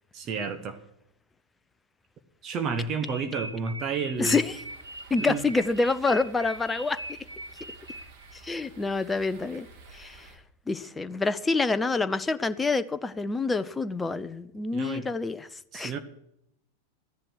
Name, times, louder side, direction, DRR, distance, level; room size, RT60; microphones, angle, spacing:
voice 1, 0.1-0.8 2.4-4.4 5.2-5.4 14.7-15.1 15.7-16.0, right 5 dB, 30° right, 1.3 m, -31 dB
sound 1, 3.0-8.3, right 1 dB, 85° right, 0.5 m, -41 dB
sound 2, 4.1-10.3, right 4 dB, 45° right, 3.0 m, -52 dB
voice 2, 4.2-4.6 5.1-7.2 8.3-9.7 9.9-10.3 10.7-15.9, left 3 dB, 10° left, 0.7 m, -27 dB
14.5 x 10.5 x 6.3 m
figure-of-eight pair, 90°, 0 cm